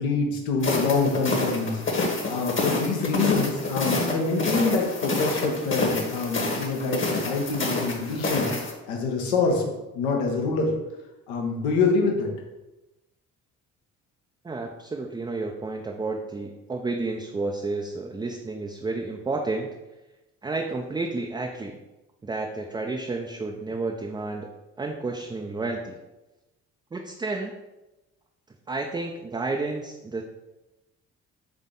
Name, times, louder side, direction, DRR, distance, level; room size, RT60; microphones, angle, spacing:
voice 1, 0.0-1.8 2.3-8.5 8.9-10.7 11.3-12.3, left 4 dB, 80° left, 1 dB, 0.9 m, -25 dB
sound 1, 0.6-8.7, left 2 dB, 30° left, 1.1 m, -28 dB
voice 2, 14.4-19.8 20.4-21.8 22.2-24.5 24.8-26.0 26.9-27.5 28.7-30.2, right 3 dB, 10° right, 2 dB, 0.3 m, -31 dB
3.7 x 3.5 x 3.8 m, 1.0 s
hypercardioid pair, 45°, 40 cm